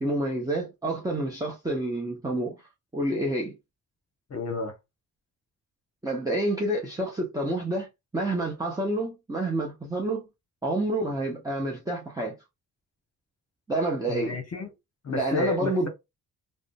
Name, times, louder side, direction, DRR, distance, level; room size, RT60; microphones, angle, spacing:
voice 1, 0.0-2.6 2.9-3.5 6.0-7.9 8.1-10.3 10.6-12.4 13.7-14.4 15.1-15.9, right 1 dB, 10° right, 0.7 m, -28 dB
voice 2, 4.3-4.8 14.1-14.7 15.0-15.9, left 3 dB, 40° left, 0.9 m, -31 dB
3.6 x 2.1 x 2.2 m
cardioid pair, 70°, 38 cm